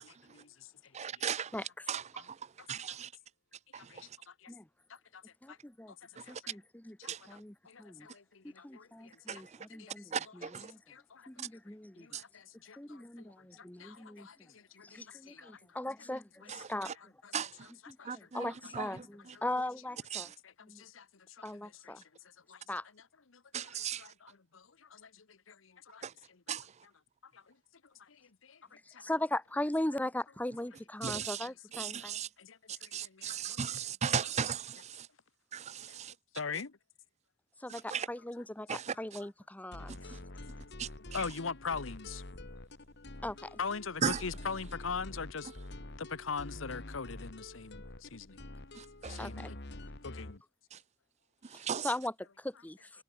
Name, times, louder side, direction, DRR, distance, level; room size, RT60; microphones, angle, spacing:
voice 1, 0.0-1.2 2.9-3.0 3.7-4.5 4.9-5.2 5.5-5.6 5.9-6.5 7.0-7.4 7.6-9.4 9.7-10.1 10.9-15.8 16.4-16.5 17.2-17.5 17.8-18.7 19.3-19.5 20.1-22.0 22.5-22.6 22.9-23.0 23.3-26.6 27.2-27.6 27.8-29.1 31.9-32.1 32.4-33.6 35.8-36.0 36.3-36.8 38.9-39.0 39.8-40.7 41.1-42.2 43.6-45.5 46.0-48.4 49.1-49.6 50.0-50.4, left 5 dB, 75° left, 1.1 m, -44 dB
voice 2, 0.9-1.5 1.9-3.1 3.7-4.1 6.2-6.4 7.0-7.2 9.3-9.6 10.1-10.7 11.4-11.5 12.1-12.2 16.5-16.9 17.3-17.7 18.0-19.3 20.1-20.3 23.5-24.1 26.0-26.1 26.5-26.7 31.0-31.5 31.7-32.3 32.7-35.1 35.5-36.1 37.7-38.1 38.7-38.9 40.1-40.2 40.8-40.9 44.0-44.2 48.7-49.3 50.7-50.8 51.4-51.9, right 7 dB, 35° right, 0.5 m, -37 dB
voice 3, 5.4-5.9 6.3-7.0 7.3-8.1 8.4-10.8 11.3-12.1 12.8-14.3 14.8-16.9 17.9-20.3 20.6-20.8 21.4-22.0 22.7-22.8 29.0-32.2 37.6-40.2 43.2-43.6 49.2-49.5 51.5-52.9, left 1 dB, 10° left, 0.8 m, -39 dB
sound 1, 39.7-50.4, left 1 dB, 60° left, 2.3 m, -47 dB
head